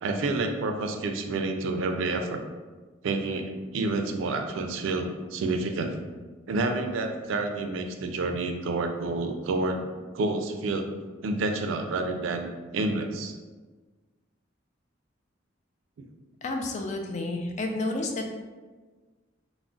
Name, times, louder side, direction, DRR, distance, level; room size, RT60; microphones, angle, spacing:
voice 1, 0.0-2.4 3.0-6.0 6.5-9.8 10.1-10.9 11.2-12.5 12.7-13.3 16.0-16.1, right 3 dB, 80° right, 5 dB, 0.3 m, -29 dB
voice 2, 16.4-18.4, left 2 dB, 40° left, 3 dB, 0.3 m, -30 dB
2.3 x 2.0 x 3.7 m, 1.3 s
head